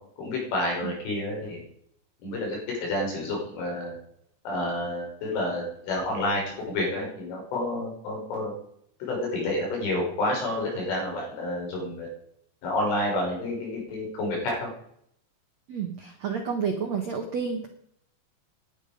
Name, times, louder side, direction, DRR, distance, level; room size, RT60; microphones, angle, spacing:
voice 1, 0.2-1.6 2.2-4.0 4.4-8.5 9.0-12.1 12.6-14.7, left 1 dB, 90° left, -1 dB, 8.5 m, -29 dB
voice 2, 15.7-17.7, right 6 dB, 75° right, 4 dB, 1.5 m, -30 dB
17.5 x 11.5 x 5.2 m, 0.70 s
omnidirectional pair, 5.5 m